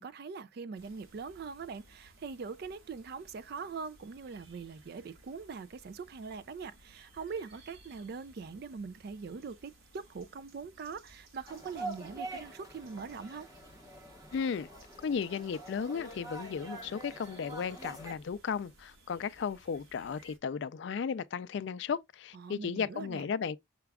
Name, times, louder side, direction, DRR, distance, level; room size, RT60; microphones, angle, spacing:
voice 1, 0.0-13.5 22.3-23.2, right 5 dB, 50° right, 0.3 m, -42 dB
sound 1, 0.7-20.4, right 1 dB, 75° right, 1.3 m, -60 dB
sound 2, 11.5-18.2, right 2 dB, 15° right, 0.9 m, -45 dB
voice 2, 14.3-14.7 15.0-23.6, left 6 dB, 55° left, 0.3 m, -35 dB
5.8 x 2.3 x 3.4 m
head